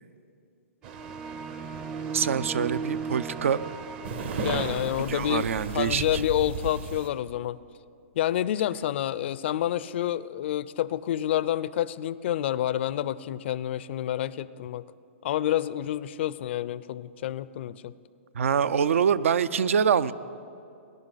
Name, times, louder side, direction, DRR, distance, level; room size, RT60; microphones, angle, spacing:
Water, 0.8-5.9, right 7 dB, 45° right, 0.8 m, -45 dB
sound 1, 0.9-4.8, right 5 dB, 10° right, 0.4 m, -36 dB
voice 1, 2.1-3.6 5.1-6.2 18.3-20.1, right 7 dB, 75° right, 16 dB, 0.5 m, -25 dB
sound 2, 4.0-7.1, right 5 dB, 60° right, 1.3 m, -34 dB
voice 2, 4.4-7.6 8.2-14.8 15.2-17.9, left 12 dB, 55° left, 17 dB, 0.4 m, -28 dB
18.5 x 10.5 x 4.0 m, 2.6 s
hypercardioid pair, 130°, 7 cm